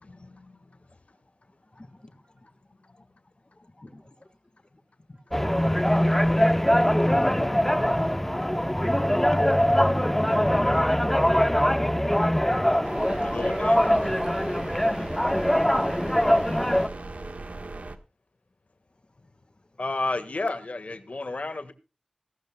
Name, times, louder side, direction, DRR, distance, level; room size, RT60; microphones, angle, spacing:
voice 1, 0.0-0.5 13.3-13.8 17.0-17.3 19.8-21.7, left 2 dB, 80° left, 1.5 m, -32 dB
voice 2, 1.5-2.5 2.8-3.1 3.4-4.3 4.7-4.8 5.1-5.2 8.4-9.0, left 1 dB, 45° left, 1.4 m, -49 dB
voice 3, 5.1-5.5 12.9-14.7 15.1-16.6, right 1 dB, 50° right, 6.8 m, -46 dB
sound 1, 5.3-16.9, equal, 10° left, 0.9 m, -22 dB
sound 2, 12.8-18.0, right 2 dB, 80° right, 1.4 m, -38 dB
18.5 x 12.0 x 2.2 m
wide cardioid pair, 50°, 2 cm